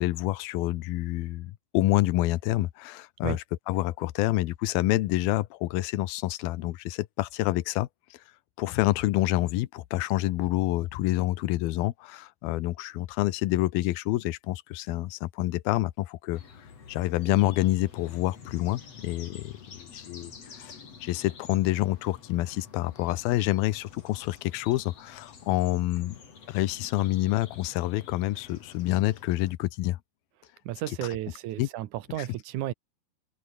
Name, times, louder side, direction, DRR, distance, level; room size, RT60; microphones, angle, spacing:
voice 1, 0.0-7.9 8.6-16.4 16.9-20.7 21.0-26.2 26.5-30.0 31.0-31.2 31.6-31.7 32.2-32.3, left 17 dB, 80° left, 2.8 m, -27 dB
sound 1, 16.3-29.5, left 5 dB, 45° left, 4.3 m, -49 dB
voice 2, 30.7-32.7, right 14 dB, 65° right, 2.2 m, -33 dB
open air
omnidirectional pair, 4.4 m